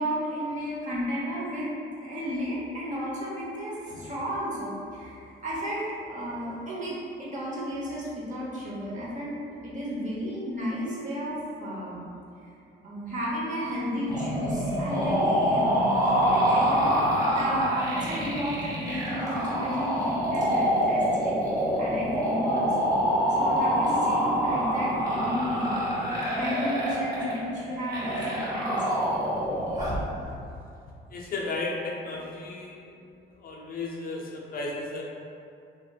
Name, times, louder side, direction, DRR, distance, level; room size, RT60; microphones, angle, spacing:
voice 1, 0.0-1.7 2.0-9.4 9.6-12.0 12.4-12.5 12.8-15.9 16.1-21.4 21.8-22.9 23.4-25.9 26.3-28.8 30.2-30.4 32.0-32.2, equal, 40° right, -7 dB, 0.9 m, -33 dB
sound 1, 14.1-30.0, equal, 20° right, 1.2 m, -26 dB
voice 2, 31.1-32.8 33.4-35.0, left 3 dB, 50° left, -2 dB, 0.4 m, -34 dB
3.1 x 2.1 x 2.2 m, 2.5 s
cardioid pair, 90°, 20 cm